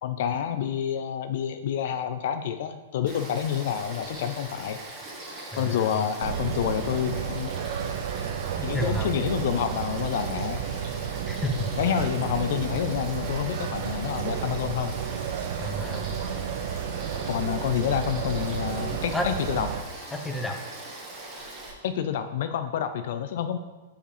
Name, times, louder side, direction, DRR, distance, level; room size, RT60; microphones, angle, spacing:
voice 1, 0.0-4.8 5.6-7.5 8.6-10.6 11.8-15.0 17.3-19.7 21.8-23.6, left 9 dB, 65° left, 9 dB, 0.4 m, -28 dB
Frog / Stream, 3.1-21.7, right 2 dB, 30° right, 1.7 m, -41 dB
voice 2, 5.5-6.0 8.6-9.1 11.3-11.7 15.6-16.2 19.1-19.3 20.1-20.6, left 1 dB, 10° left, 4 dB, 0.8 m, -30 dB
sound 1, 6.2-19.8, right 8 dB, 65° right, 0.5 m, -32 dB
5.0 x 4.9 x 4.9 m, 1.2 s
hypercardioid pair, 120°, 0 cm